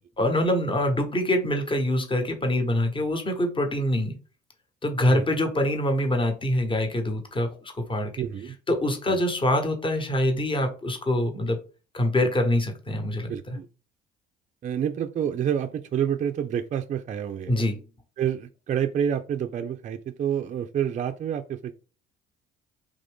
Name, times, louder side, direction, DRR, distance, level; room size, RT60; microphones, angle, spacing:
voice 1, 0.2-4.2 4.8-8.1 8.7-11.6 11.9-13.6 17.5-17.8, left 1 dB, 25° left, 5 dB, 1.0 m, -25 dB
voice 2, 8.2-8.6 9.1-9.2 13.3-13.7 14.6-17.5 18.2-21.7, right 9 dB, 35° right, 7 dB, 0.4 m, -28 dB
3.5 x 2.5 x 3.4 m, 0.35 s
supercardioid pair, 75°, 21 cm